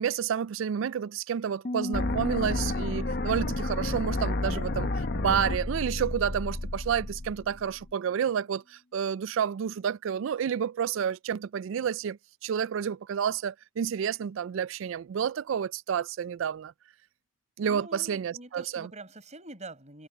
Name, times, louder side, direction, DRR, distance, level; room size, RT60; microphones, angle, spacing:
voice 1, 0.0-16.7 17.6-18.9, right 8 dB, 70° right, 0.3 m, -30 dB
Piano, 1.6-7.2, left 1 dB, 35° left, 0.5 m, -39 dB
sound 1, 1.9-7.9, left 2 dB, 55° left, 1.0 m, -31 dB
voice 2, 17.7-20.1, right 2 dB, 35° right, 5.4 m, -45 dB
head